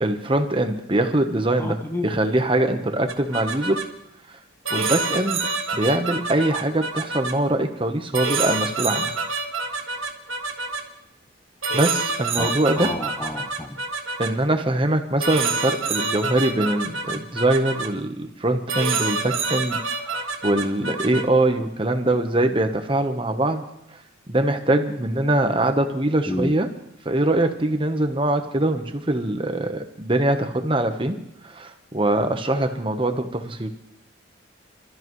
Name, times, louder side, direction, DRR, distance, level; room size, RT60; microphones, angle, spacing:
voice 1, 0.0-3.8 4.3-4.4 4.7-9.1 11.7-13.0 14.2-23.6 23.9-24.0 24.3-26.7 27.0-31.2 31.4-33.7, right 1 dB, 25° right, 6 dB, 1.1 m, -23 dB
voice 2, 1.6-2.1 12.4-13.8 26.3-26.5, left 1 dB, 10° left, 6 dB, 0.6 m, -30 dB
sound 1, 3.1-3.8 4.6-7.3 8.1-10.8 11.6-14.3 15.2-17.9 18.7-21.3, right 4 dB, 90° right, 1.6 m, -27 dB
27.0 x 13.5 x 3.2 m, 0.79 s
head